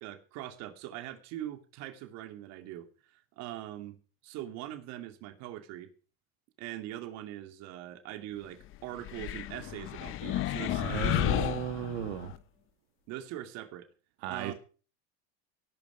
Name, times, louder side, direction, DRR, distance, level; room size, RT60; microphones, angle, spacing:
voice 1, 0.0-4.0 4.2-5.9 6.6-11.4 13.1-13.9 14.3-14.5, right 13 dB, 55° right, 2.6 m, -42 dB
sound 1, 9.0-12.4, left 14 dB, 40° left, 1.0 m, -32 dB
voice 2, 10.7-12.3 14.2-14.5, right 11 dB, 75° right, 2.2 m, -35 dB
18.5 x 12.5 x 5.1 m
supercardioid pair, 135°, 31 cm